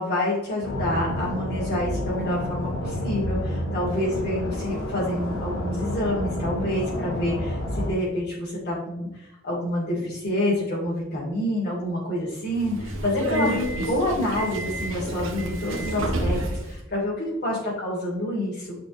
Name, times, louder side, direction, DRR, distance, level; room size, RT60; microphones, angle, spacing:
voice 1, 0.0-18.8, left 1 dB, 55° left, -9 dB, 3.1 m, -27 dB
sound 1, 0.6-7.9, equal, 85° left, 1.9 m, -29 dB
Subway metro underground, 12.5-16.7, right 1 dB, 75° right, 1.5 m, -29 dB
9.7 x 6.2 x 3.2 m, 0.91 s
head